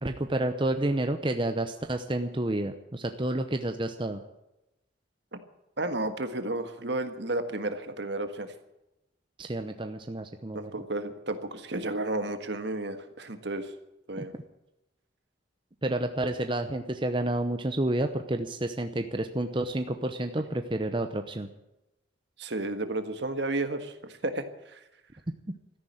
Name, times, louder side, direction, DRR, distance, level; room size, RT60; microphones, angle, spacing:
voice 1, 0.0-4.2 9.4-10.9 14.2-14.4 15.8-21.5, right 1 dB, 25° right, 7 dB, 0.8 m, -30 dB
voice 2, 5.8-8.5 10.5-13.7 14.1-14.3 22.4-23.9 24.2-24.8, right 2 dB, 65° right, 8 dB, 1.6 m, -32 dB
13.5 x 10.5 x 9.3 m, 0.91 s
head